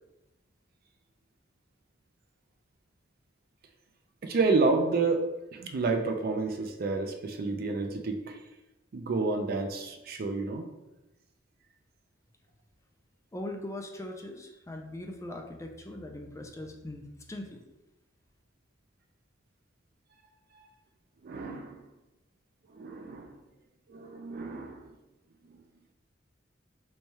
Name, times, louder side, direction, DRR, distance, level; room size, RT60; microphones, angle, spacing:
voice 1, 4.2-8.4 8.9-10.7 20.5-20.6 21.2-21.8 22.7-23.3 23.9-24.9 25.5-25.6, right 3 dB, 50° right, 5 dB, 0.4 m, -30 dB
voice 2, 13.3-17.6, left 1 dB, 15° left, 2 dB, 0.3 m, -40 dB
3.1 x 2.3 x 4.1 m, 0.96 s
head